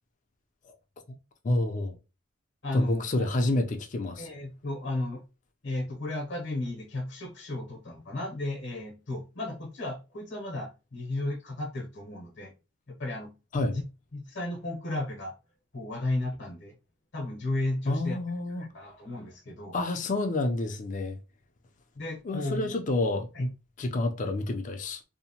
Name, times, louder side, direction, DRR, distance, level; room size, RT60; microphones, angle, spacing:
voice 1, 1.4-2.0 2.7-4.3 13.5-13.8 17.9-18.7 19.7-21.2 22.2-23.5 23.8-25.0, left 2 dB, 40° left, 0.4 m, -29 dB
voice 2, 2.6-3.3 4.2-5.2 5.6-12.5 12.9-13.3 13.7-13.8 14.1-15.3 15.7-16.7 17.1-18.2 18.6-19.7 21.9-22.8 23.3-23.4, left 2 dB, 60° left, 0.8 m, -34 dB
2.8 x 2.1 x 2.7 m
head